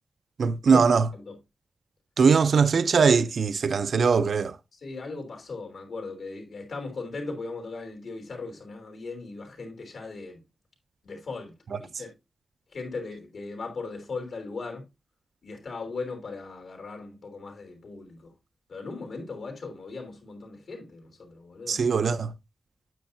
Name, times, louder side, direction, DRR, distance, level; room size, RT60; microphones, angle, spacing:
voice 1, 0.4-1.1 2.2-4.5 21.7-22.3, right 5 dB, 80° right, 0.5 m, -21 dB
voice 2, 4.7-10.4 11.0-12.1 12.7-14.8 15.4-18.3 18.7-21.8, left 3 dB, 85° left, 3.4 m, -38 dB
9.1 x 8.3 x 2.7 m
wide cardioid pair, 150°, 0 cm